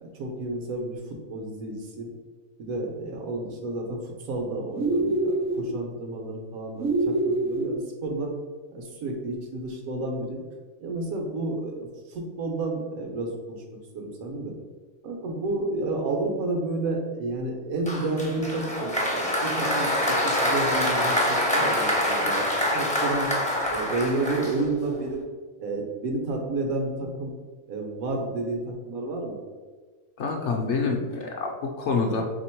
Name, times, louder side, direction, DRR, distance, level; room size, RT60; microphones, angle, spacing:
voice 1, 0.0-2.1 2.6-8.3 8.7-10.4 10.8-13.6 13.9-14.5 15.0-22.4 22.7-23.3 23.7-25.2 25.6-27.3 27.7-29.4, right 2 dB, 80° right, 1 dB, 1.2 m, -31 dB
sound 1, 4.8-5.7 6.8-7.7, right 2 dB, 60° right, 0.9 m, -25 dB
Applause, 17.9-25.0, left 1 dB, 10° left, 0.4 m, -25 dB
voice 2, 30.2-32.2, left 4 dB, 65° left, 1 dB, 0.8 m, -27 dB
3.4 x 2.9 x 4.4 m, 1.4 s
omnidirectional pair, 1.5 m